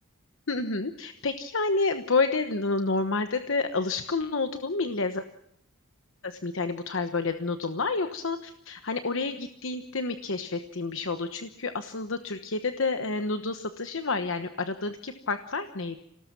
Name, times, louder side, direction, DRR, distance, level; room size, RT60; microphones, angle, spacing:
voice 1, 0.5-5.3 6.2-16.0, left 3 dB, 65° left, 8 dB, 1.1 m, -29 dB
27.0 x 18.5 x 6.0 m, 0.80 s
head